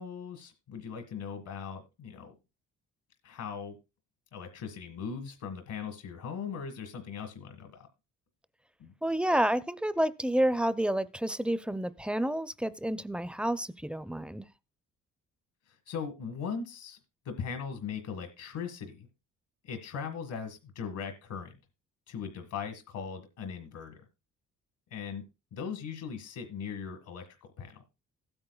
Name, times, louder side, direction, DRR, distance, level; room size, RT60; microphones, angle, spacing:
voice 1, 0.0-2.3 3.2-3.8 4.3-7.9 8.8-8.9 15.7-17.0 17.2-19.1 19.6-21.5 22.1-24.0 24.9-25.2 25.5-27.3 27.6-27.8, left 6 dB, 80° left, 1.5 m, -39 dB
voice 2, 9.0-14.4, right 1 dB, 5° right, 0.4 m, -29 dB
15.5 x 8.8 x 2.3 m
cardioid pair, 90°, 30 cm